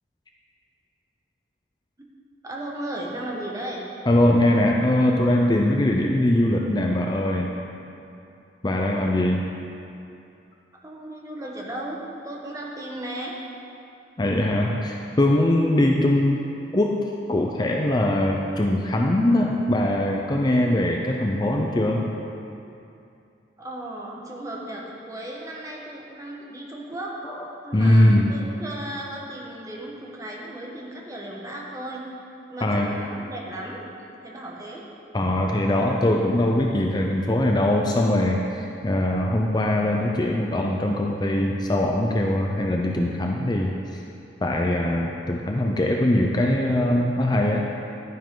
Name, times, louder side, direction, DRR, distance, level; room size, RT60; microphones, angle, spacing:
voice 1, 2.4-3.9 10.8-13.4 23.6-27.2 27.6-32.1 32.5-33.8 34.2-34.9, right 1 dB, 20° right, -3 dB, 1.3 m, -35 dB
voice 2, 4.1-7.5 8.6-9.5 14.2-16.4 16.7-22.1 27.2-27.4 27.7-28.3 32.6-33.0 35.1-44.0 44.4-47.7, left 1 dB, 25° left, 0 dB, 0.5 m, -21 dB
11.5 x 9.5 x 3.8 m, 2.7 s
head